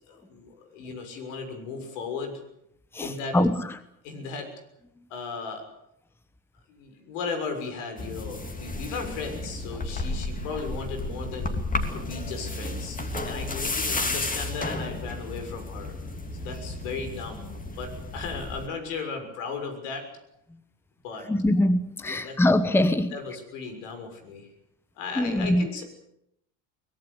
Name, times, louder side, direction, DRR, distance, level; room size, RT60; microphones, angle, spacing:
voice 1, 0.1-2.4 3.0-3.4 4.0-4.5 5.1-5.7 6.7-11.6 11.9-16.0 16.4-20.1 21.0-21.3 22.0-22.4 23.1-24.5 25.0-25.8, left 4 dB, 80° left, 6.7 m, -36 dB
voice 2, 2.9-3.7 21.3-23.1 25.2-25.7, left 1 dB, 5° left, 1.1 m, -23 dB
sound 1, 8.0-18.7, left 2 dB, 20° left, 2.9 m, -32 dB
23.5 x 18.5 x 8.3 m
supercardioid pair, 105°, 37 cm